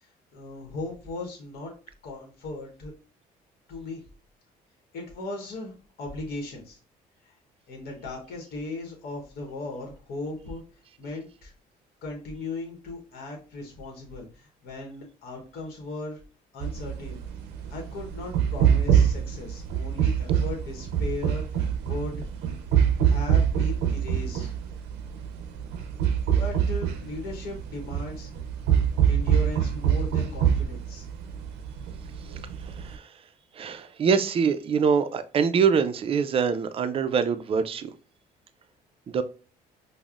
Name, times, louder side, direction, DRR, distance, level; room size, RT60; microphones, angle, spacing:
voice 1, 0.3-1.7 2.0-2.9 3.7-4.0 4.9-6.8 7.2-7.3 7.7-10.6 11.0-11.5 12.0-16.2 16.5-17.2 17.7-22.3 23.1-24.5 26.3-28.3 29.1-31.1, left 2 dB, 65° left, 1.0 m, -37 dB
sound 1, 16.6-33.0, right 8 dB, 85° right, 0.5 m, -25 dB
voice 2, 33.6-37.9 39.1-39.2, right 6 dB, 35° right, 0.4 m, -24 dB
5.2 x 2.0 x 2.4 m
cardioid pair, 110°, 17 cm